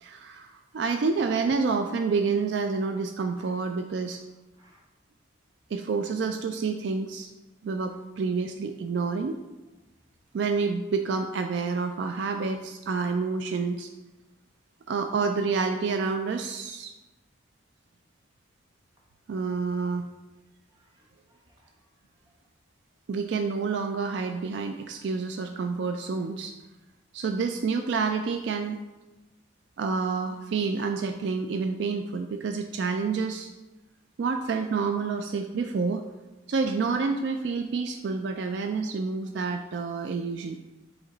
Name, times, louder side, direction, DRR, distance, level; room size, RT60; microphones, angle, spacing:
voice 1, 0.0-4.2 5.7-7.3 7.6-9.4 10.3-13.9 14.9-16.9 19.3-20.1 23.1-26.5 27.1-28.8 29.8-33.5 34.2-36.0 36.5-40.6, right 4 dB, 60° right, 6 dB, 0.3 m, -28 dB
voice 2, 20.7-22.3, right 1 dB, 20° right, -2 dB, 1.0 m, -65 dB
8.1 x 3.0 x 3.8 m, 1.1 s
head